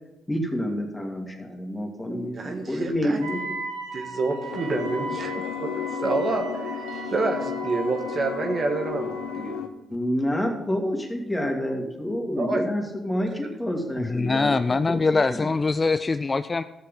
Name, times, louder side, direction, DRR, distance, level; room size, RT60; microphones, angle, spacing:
voice 1, 0.3-3.6 9.9-14.6 14.9-15.0 15.3-15.5, equal, 15° left, 1 dB, 2.6 m, -28 dB
voice 2, 2.1-3.2 3.9-5.7 6.0-9.6 12.4-12.6, right 3 dB, 50° right, 3 dB, 1.6 m, -28 dB
Wind instrument woodwind instrument, 3.2-9.6, right 2 dB, 90° right, 1.1 m, -37 dB
sound 1, 4.5-9.7, left 8 dB, 85° left, 0.6 m, -33 dB
voice 3, 14.0-16.6, left 3 dB, 35° left, 11 dB, 0.3 m, -23 dB
14.0 x 6.7 x 3.7 m, 1.0 s
hypercardioid pair, 50°, 0 cm